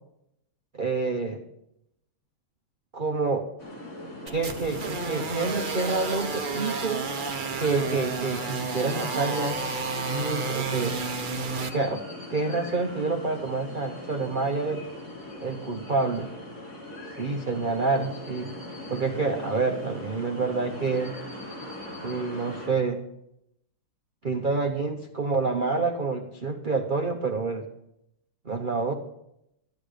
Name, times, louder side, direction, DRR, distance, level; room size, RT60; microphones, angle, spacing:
voice 1, 0.7-1.4 2.9-3.5 4.3-7.0 7.6-9.6 10.1-11.0 11.7-12.0 12.3-14.8 15.4-16.3 17.2-18.5 18.9-21.2 22.0-23.0 24.2-27.7 28.4-28.9, right 3 dB, 85° right, 4 dB, 0.4 m, -28 dB
sound 1, 3.6-22.7, left 1 dB, 40° left, 4.0 m, -40 dB
sound 2, 4.3-11.7, right 4 dB, 45° right, 0.7 m, -31 dB
13.5 x 10.5 x 5.1 m, 0.82 s
omnidirectional pair, 2.3 m